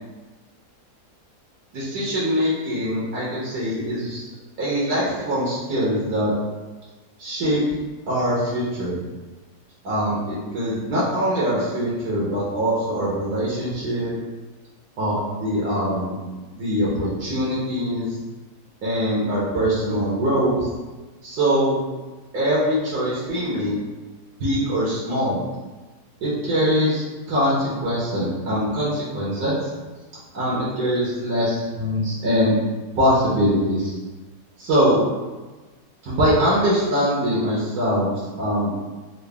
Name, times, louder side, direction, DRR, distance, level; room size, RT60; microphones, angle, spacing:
voice 1, 1.7-4.2 4.6-6.3 7.2-7.6 8.1-9.0 9.8-14.1 15.0-16.2 16.5-18.2 18.8-20.7 21.2-21.8 22.3-23.8 24.4-25.4 26.2-29.7 30.3-32.5 32.9-33.9 34.6-35.0 36.0-38.7, equal, 80° right, -7 dB, 1.4 m, -23 dB
3.8 x 2.1 x 3.3 m, 1.2 s
omnidirectional pair, 1.7 m